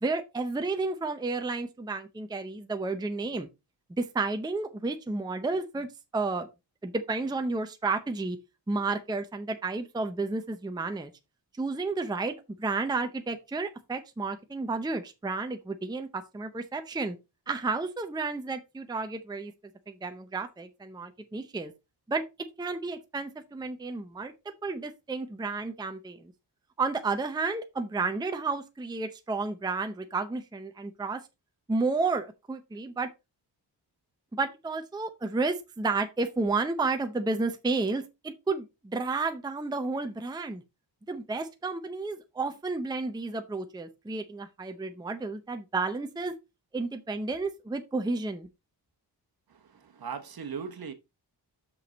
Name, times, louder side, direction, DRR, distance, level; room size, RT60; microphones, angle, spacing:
voice 1, 0.0-3.5 4.0-5.9 6.1-6.5 6.8-8.4 8.7-11.1 11.6-17.2 17.5-19.5 19.9-21.7 22.1-22.2 22.6-24.3 24.6-26.3 26.8-31.2 31.7-33.1 34.3-40.6 41.1-46.3 46.7-48.5, right 3 dB, 10° right, 0.6 m, -31 dB
voice 2, 49.5-50.9, right 6 dB, 55° right, 1.1 m, -39 dB
6.2 x 5.4 x 3.9 m
wide cardioid pair, 175°, 43 cm